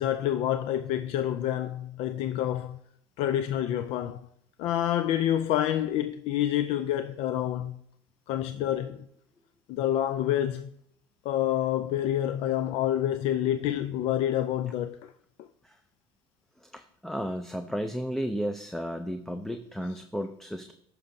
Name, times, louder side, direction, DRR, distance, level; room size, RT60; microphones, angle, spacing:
voice 1, 0.0-2.8 3.2-4.2 4.6-7.8 8.3-9.0 9.7-10.7 11.3-15.1, left 11 dB, 65° left, 0.4 m, -28 dB
voice 2, 16.7-20.7, equal, 5° left, 0.5 m, -33 dB
14.0 x 5.8 x 2.7 m
supercardioid pair, 100°, 10 cm